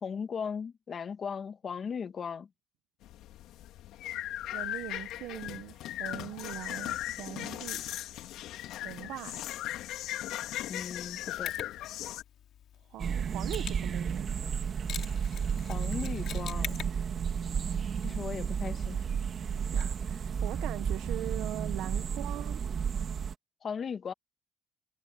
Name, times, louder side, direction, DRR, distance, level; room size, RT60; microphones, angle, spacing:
voice 1, 0.0-2.5 10.7-11.5 15.7-16.8 18.0-19.1 23.6-24.1, left 6 dB, 35° left, 1.8 m, -37 dB
sound 1, 3.0-12.2, left 13 dB, 75° left, 4.0 m, -38 dB
voice 2, 4.5-7.8 8.7-9.4 12.9-14.5 19.7-22.6, right 14 dB, 75° right, 1.2 m, -41 dB
Mechanisms, 11.5-21.3, left 10 dB, 60° left, 2.9 m, -47 dB
sound 2, 13.0-23.3, right 7 dB, 40° right, 2.5 m, -32 dB
cardioid pair, 130°, 0 cm